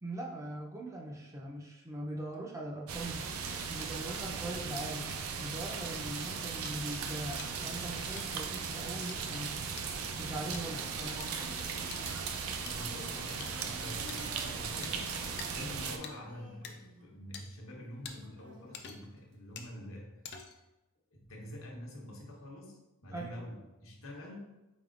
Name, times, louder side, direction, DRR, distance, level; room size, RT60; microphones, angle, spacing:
voice 1, 0.0-3.3 3.7-5.1 5.4-9.7 10.2-11.5 15.5-15.7 23.1-23.4, right 1 dB, 15° right, -2 dB, 0.4 m, -41 dB
sound 1, 2.9-16.0, right 5 dB, 90° right, 0.4 m, -38 dB
sound 2, 6.6-6.7 7.4-7.5 8.2-8.4 9.1-9.2 9.8-9.9 10.5-10.6 11.2-11.3 11.9-12.2 12.7-12.8 13.4-13.5 14.1-14.3 14.8-14.9 15.4-15.5 16.0-16.1 16.6-16.7 17.3-17.4 18.0-18.2 18.7-19.1 19.6-19.7 20.2-20.6, left 6 dB, 50° left, 0.4 m, -46 dB
Human voice, 10.1-17.5 18.1-19.5, equal, 65° right, 1.0 m, -52 dB
voice 2, 12.4-15.1 15.5-20.2 21.1-24.6, left 1 dB, 75° left, -1 dB, 0.9 m, -47 dB
4.4 x 3.4 x 2.4 m, 1.0 s
head